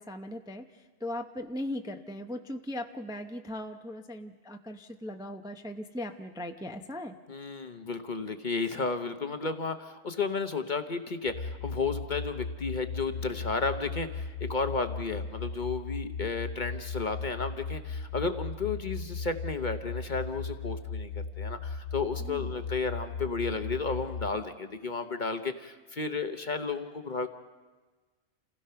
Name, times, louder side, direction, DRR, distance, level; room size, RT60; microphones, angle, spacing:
voice 1, 0.0-7.2 22.2-22.5, left 1 dB, 5° right, 5 dB, 0.6 m, -38 dB
voice 2, 7.3-27.3, left 4 dB, 40° left, 7 dB, 1.0 m, -33 dB
sound 1, 11.3-24.3, left 4 dB, 80° left, 1.6 m, -37 dB
28.5 x 16.5 x 5.7 m, 1.3 s
omnidirectional pair, 1.3 m